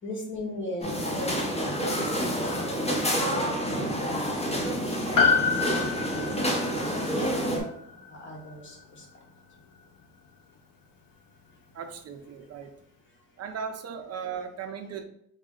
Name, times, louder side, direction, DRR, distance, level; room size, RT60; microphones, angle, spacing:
voice 1, 0.0-1.8 2.3-3.5 4.0-5.3 6.1-7.6 8.2-9.0, left 1 dB, 35° left, -1 dB, 1.1 m, -39 dB
sound 1, 0.8-7.6, equal, 20° left, 0.8 m, -28 dB
Piano, 5.2-9.8 10.0-10.1, left 5 dB, 70° left, 0.7 m, -28 dB
voice 2, 11.7-12.7 13.4-15.0, right 6 dB, 45° right, 7 dB, 0.5 m, -37 dB
3.9 x 2.1 x 3.6 m, 0.73 s
cardioid pair, 105°, 35 cm